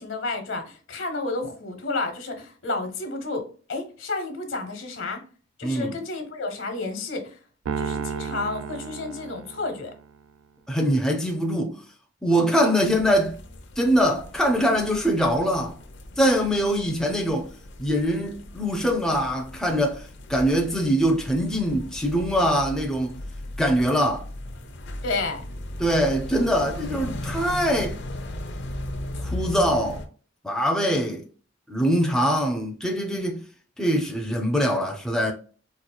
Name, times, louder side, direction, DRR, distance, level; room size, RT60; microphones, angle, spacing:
voice 1, 0.0-5.2 5.6-7.4 7.8-9.9 25.0-25.4, left 3 dB, 80° left, 1.0 m, -31 dB
voice 2, 5.6-6.0 10.7-11.8 12.2-13.4 13.8-15.8 16.2-17.5 17.8-20.0 20.3-23.2 23.6-24.2 25.8-28.0 29.2-30.0 30.4-31.3 31.7-33.4 33.8-35.3, equal, 5° left, 0.4 m, -23 dB
Piano, 7.7-10.1, right 6 dB, 90° right, 0.3 m, -32 dB
sound 1, 12.8-30.1, left 1 dB, 60° left, 0.6 m, -37 dB
4.2 x 2.4 x 2.2 m
head